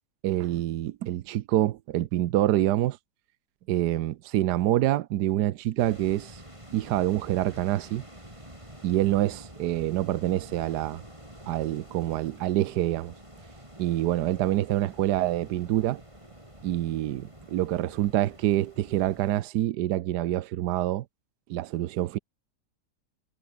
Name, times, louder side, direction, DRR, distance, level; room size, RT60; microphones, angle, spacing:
voice 1, 0.2-3.0 3.7-6.4 6.7-8.0 8.8-11.0 11.5-13.1 13.8-16.0 16.6-21.0 21.5-22.2, right 14 dB, 80° right, 1.3 m, -26 dB
sound 1, 5.8-19.4, right 1 dB, 15° right, 7.8 m, -48 dB
omnidirectional pair, 1.8 m